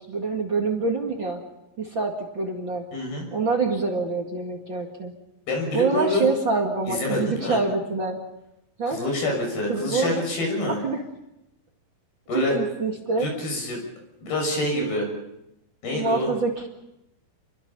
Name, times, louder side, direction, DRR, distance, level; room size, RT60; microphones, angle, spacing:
voice 1, 0.0-1.4 1.8-2.8 3.3-5.1 5.7-8.2 8.8-9.1 9.7-10.1 10.7-11.0 12.3-13.3 15.9-16.7, right 3 dB, 35° right, 1 dB, 2.4 m, -26 dB
voice 2, 2.9-3.3 5.5-6.3 6.9-7.6 8.9-10.8 12.3-12.6 13.2-13.8 14.2-15.1 15.8-16.3, left 1 dB, 80° left, 1 dB, 8.5 m, -26 dB
29.0 x 23.0 x 5.6 m, 0.87 s
omnidirectional pair, 4.3 m